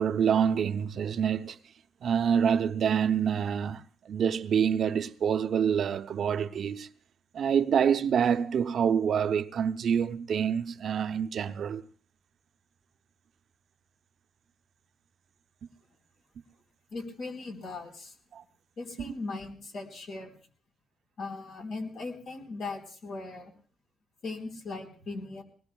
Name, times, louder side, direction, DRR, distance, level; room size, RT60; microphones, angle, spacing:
voice 1, 0.0-1.6 2.0-6.9 7.3-11.8 18.3-18.4, right 7 dB, 60° right, 0.6 m, -27 dB
voice 2, 16.9-18.1 18.8-20.3 21.2-23.5 24.2-25.4, left 3 dB, 70° left, 4.1 m, -38 dB
24.5 x 19.5 x 2.3 m
cardioid pair, 90°, 0 cm